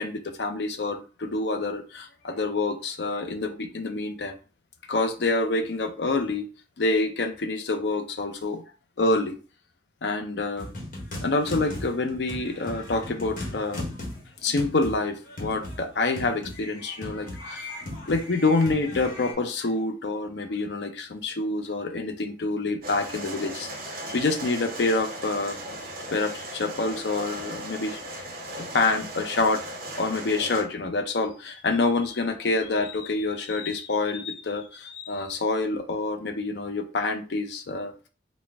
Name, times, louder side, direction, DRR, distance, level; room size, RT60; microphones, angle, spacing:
voice 1, 0.0-4.4 4.9-6.5 6.8-8.6 9.0-9.4 10.0-10.7 11.2-13.9 14.4-17.7 18.1-25.6 26.1-28.0 28.7-29.6 30.0-37.9, left 3 dB, 70° left, 0.6 m, -27 dB
sound 1, 10.6-19.3, left 1 dB, 50° left, 1.2 m, -37 dB
sound 2, 22.8-30.6, right 1 dB, 50° right, 1.0 m, -37 dB
4.1 x 2.2 x 3.4 m
head